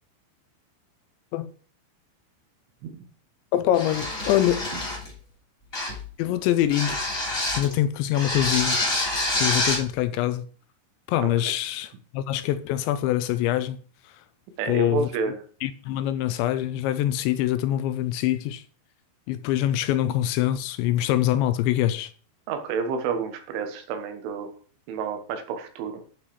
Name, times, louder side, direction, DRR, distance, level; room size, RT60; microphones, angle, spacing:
voice 1, 3.5-4.6 6.2-7.0 7.6-8.8 9.4-10.5 11.1-13.8 14.7-15.1 15.6-18.6 19.3-22.1, left 12 dB, 80° left, 2.8 m, -24 dB
sound 1, 3.7-5.1 5.7-6.1 6.7-7.7 8.1-9.8, left 2 dB, 20° left, 3.4 m, -27 dB
voice 2, 14.6-15.4 22.5-24.5 24.9-26.0, right 5 dB, 85° right, 3.9 m, -29 dB
11.5 x 5.7 x 4.8 m
omnidirectional pair, 5.4 m